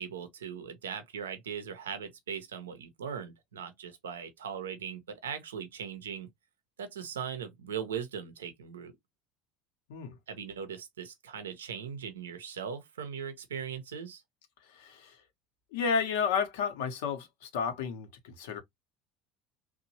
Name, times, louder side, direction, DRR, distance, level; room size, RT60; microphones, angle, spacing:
voice 1, 0.0-6.3 6.8-8.9 10.3-14.2, right 7 dB, 85° right, 0.5 m, -39 dB
voice 2, 14.6-15.2 15.7-18.6, left 6 dB, 75° left, 0.7 m, -32 dB
2.9 x 2.1 x 2.7 m
hypercardioid pair, 75°, 0 cm